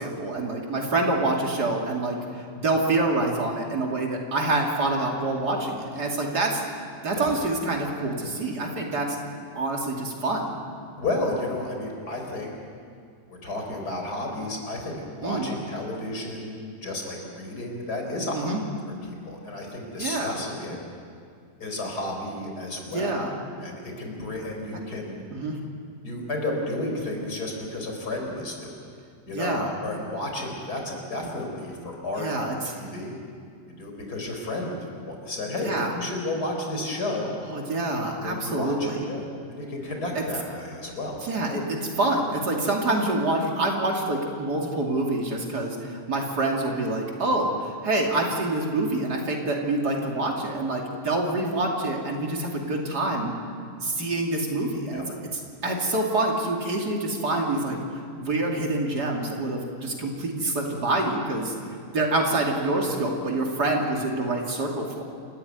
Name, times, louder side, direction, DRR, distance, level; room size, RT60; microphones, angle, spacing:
voice 1, 0.0-6.6 7.0-9.2 9.5-10.6 15.2-15.5 18.3-18.6 20.0-20.4 22.9-23.3 25.3-25.6 29.3-29.7 32.2-32.6 35.6-35.9 37.5-39.1 40.1-40.2 41.2-53.3 53.8-55.0 55.3-61.5 61.9-65.0, right 2 dB, 75° right, 0 dB, 3.3 m, -26 dB
voice 2, 7.2-7.5 11.0-12.5 13.3-18.6 19.1-20.8 21.6-23.2 23.6-25.2 26.0-28.8 29.3-32.3 32.7-33.2 33.8-37.3 38.2-39.2 39.5-41.2 54.9-55.1, left 2 dB, 70° left, 1 dB, 4.7 m, -32 dB
28.5 x 14.0 x 9.4 m, 2.3 s
omnidirectional pair, 1.8 m